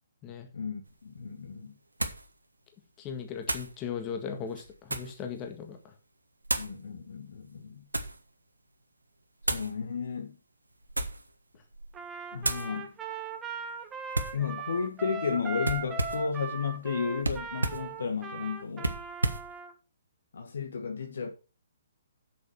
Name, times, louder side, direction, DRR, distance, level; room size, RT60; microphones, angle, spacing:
voice 1, 0.5-1.7 6.5-7.8 9.5-10.4 12.3-12.9 14.3-18.9 20.3-21.3, left 5 dB, 65° left, 1.6 m, -33 dB
sound 1, 0.9-1.0 2.0-2.3 3.4-3.7 4.5-5.2 6.4-6.8 7.5-8.2 9.4-9.7 10.8-11.3 11.7-12.0 12.4-12.7 14.1-14.4 15.6-16.3 17.2-17.9 18.8-19.5, right 2 dB, 90° right, 1.5 m, -32 dB
voice 2, 3.0-5.8, left 7 dB, 25° left, 1.7 m, -37 dB
Trumpet, 11.9-19.7, right 5 dB, 15° right, 1.5 m, -39 dB
7.7 x 7.2 x 5.8 m
figure-of-eight pair, 130°, 0 cm